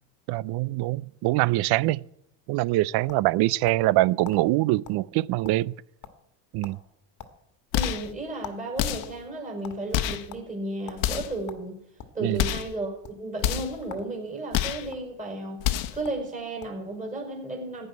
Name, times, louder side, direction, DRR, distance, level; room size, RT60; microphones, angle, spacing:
voice 1, 0.3-2.0 2.5-5.7 6.5-6.8 12.2-12.4, right 18 dB, 55° right, 0.5 m, -24 dB
sound 1, 3.1-3.9 4.2-4.4 4.8-5.0 5.3-5.8 6.0-6.3 6.6-6.8 7.2-8.6 8.9-9.8 10.3-10.4 10.9-11.0 11.5-12.2 12.9-13.1 13.8-14.1 14.4-15.0 15.7-15.8 16.0-16.2 16.6-16.9, left 8 dB, 40° left, 1.6 m, -43 dB
sound 2, 7.7-8.1 8.8-9.2 9.9-10.3 11.0-11.4 12.3-12.7 13.4-13.8 14.5-14.9 15.6-16.0, left 12 dB, 70° left, 1.1 m, -27 dB
voice 2, 7.7-11.8 12.1-17.9, right 2 dB, 15° right, 5.3 m, -34 dB
15.0 x 5.4 x 9.8 m
cardioid pair, 120°, 46 cm